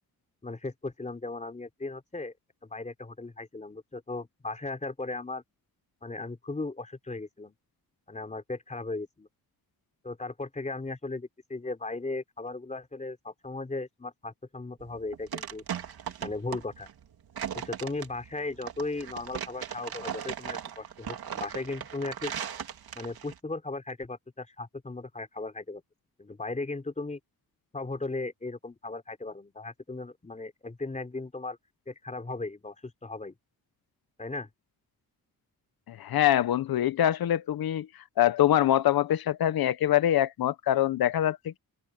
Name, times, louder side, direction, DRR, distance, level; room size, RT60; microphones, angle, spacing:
voice 1, 0.4-2.3 2.6-5.4 6.0-7.6 8.1-9.3 10.0-15.6 16.2-16.9 17.5-22.3 23.0-25.8 26.2-27.2 27.7-31.6 31.9-33.4 34.2-34.5, left 3 dB, 20° left, 3.9 m, -37 dB
sound 1, 14.8-23.4, right 9 dB, 80° right, 2.6 m, -38 dB
voice 2, 35.9-37.9 38.2-41.6, left 12 dB, 75° left, 0.8 m, -24 dB
open air
wide cardioid pair, 165°, 36 cm